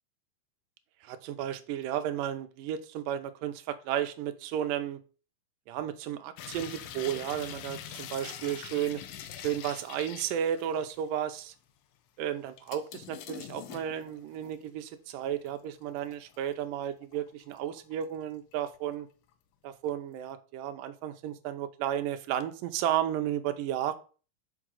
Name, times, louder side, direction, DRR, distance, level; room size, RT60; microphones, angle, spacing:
voice 1, 1.0-5.0 5.7-9.0 9.4-11.5 12.2-19.1 19.6-24.0, right 10 dB, 80° right, 8 dB, 2.3 m, -33 dB
sound 1, 6.4-11.1 11.5-11.6 12.6-14.8 15.2-16.5 16.9-18.1 18.5-19.0 19.3-19.4, left 10 dB, 80° left, 2.4 m, -44 dB
5.7 x 5.0 x 6.3 m, 0.37 s
omnidirectional pair, 4.1 m